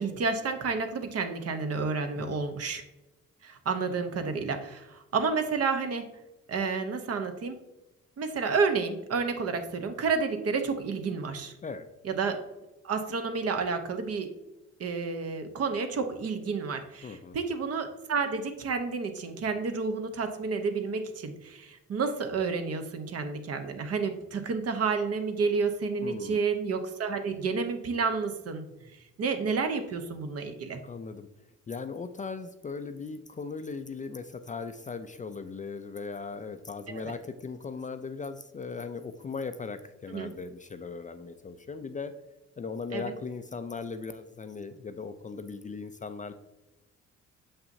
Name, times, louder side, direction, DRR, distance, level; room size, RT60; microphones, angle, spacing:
voice 1, 0.0-2.8 3.4-6.1 6.5-7.6 8.2-11.5 12.0-12.4 12.8-14.3 14.8-30.8 36.9-37.1 40.1-40.3 42.9-43.1, right 4 dB, 55° right, 7 dB, 0.9 m, -30 dB
voice 2, 17.0-17.4 26.0-26.4 30.8-31.3 31.7-42.1 42.6-46.3, left 4 dB, 25° left, 9 dB, 0.4 m, -38 dB
6.6 x 5.7 x 2.7 m, 0.99 s
cardioid pair, 90°, 30 cm